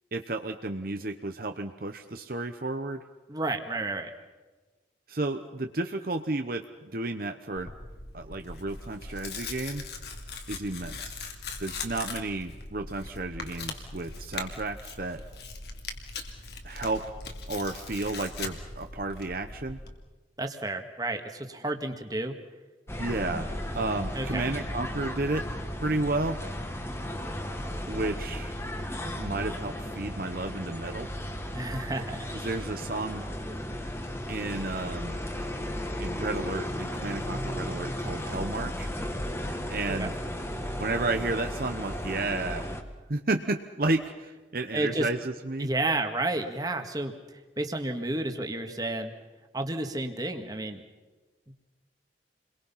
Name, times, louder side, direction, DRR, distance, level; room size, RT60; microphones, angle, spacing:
voice 1, 0.1-3.0 5.1-6.6 6.9-7.7 8.1-9.8 10.5-11.2 11.6-15.2 16.6-17.0 17.5-19.8 23.0-25.5 25.8-26.4 27.9-28.5 29.1-31.1 32.4-33.2 34.3-35.2 36.0-38.9 39.7-40.1 40.8-42.7 43.1-45.7, right 2 dB, 50° right, 6 dB, 0.9 m, -32 dB
voice 2, 3.3-4.1 20.4-22.4 24.1-24.5 31.5-32.4 39.9-40.1 44.7-45.1 45.6-49.1 49.5-50.8, right 2 dB, 20° right, 5 dB, 1.8 m, -31 dB
Tearing, 7.6-19.9, left 4 dB, 60° left, 2.5 m, -40 dB
sound 1, 22.9-42.8, equal, 15° left, 1.6 m, -35 dB
29.0 x 22.0 x 5.7 m, 1.3 s
head